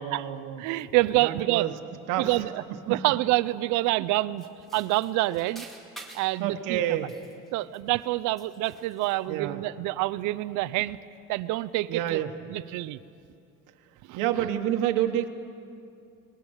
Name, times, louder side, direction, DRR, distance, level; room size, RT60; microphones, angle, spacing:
voice 1, 0.0-0.6 1.2-1.7 2.1-2.4 2.9-3.0 6.4-7.1 9.3-9.6 11.9-12.3 14.1-15.3, right 11 dB, 85° right, 5 dB, 1.4 m, -28 dB
voice 2, 0.6-1.7 2.2-4.5 4.7-5.7 6.1-7.0 7.5-11.0 11.3-12.2 12.5-13.0 14.1-14.2, right 18 dB, 70° right, 16 dB, 0.7 m, -27 dB
sound 1, 4.4-6.4 6.9-8.1 8.4-9.2, right 2 dB, ahead, 2.3 m, -48 dB
25.5 x 20.5 x 6.5 m, 2.5 s
cardioid pair, 165°, 31 cm